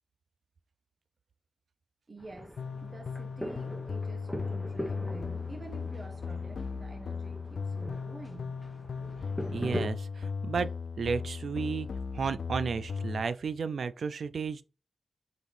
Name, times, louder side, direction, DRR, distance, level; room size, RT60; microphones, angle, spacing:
voice 1, 2.1-8.6, right 2 dB, 40° right, 1.1 m, -48 dB
sound 1, 2.2-9.9, equal, 5° left, 1.1 m, -41 dB
sound 2, 2.6-13.2, left 5 dB, 80° left, 0.4 m, -37 dB
voice 2, 9.5-10.7 11.0-11.9 12.1-14.6, right 5 dB, 80° right, 0.3 m, -33 dB
4.1 x 2.9 x 3.5 m
wide cardioid pair, 85°, 0 cm